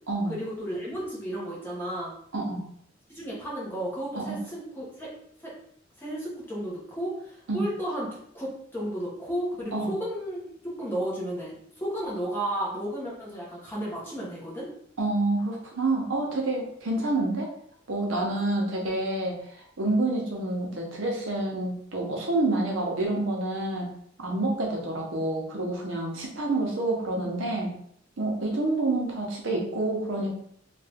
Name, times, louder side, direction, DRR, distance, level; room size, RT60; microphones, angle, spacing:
voice 1, 0.3-2.2 3.1-5.1 5.4-5.5 6.0-14.7, right 1 dB, 10° left, -6 dB, 1.0 m, -33 dB
voice 2, 15.0-17.5 17.9-19.4 19.8-23.9 24.2-27.8 28.2-30.3, right 2 dB, 75° right, 0 dB, 0.8 m, -28 dB
2.8 x 2.5 x 3.4 m, 0.67 s
head